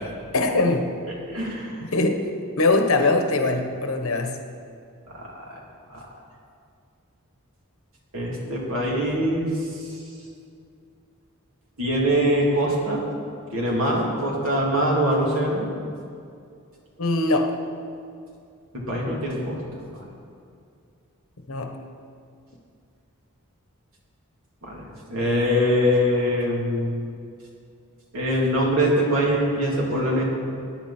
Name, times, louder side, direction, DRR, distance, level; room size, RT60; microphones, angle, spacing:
voice 1, 0.3-0.9 1.8-2.2 2.6-4.4 17.0-17.5 21.5-21.8, left 2 dB, 65° left, 5 dB, 1.3 m, -22 dB
voice 2, 1.3-1.8 5.1-5.3 5.9-6.0 8.1-9.6 11.8-13.1 13.5-15.7 18.7-19.6 19.9-20.1 24.6-27.0 28.1-30.3, equal, 65° right, -3 dB, 3.3 m, -23 dB
20.5 x 10.0 x 4.5 m, 2.4 s
head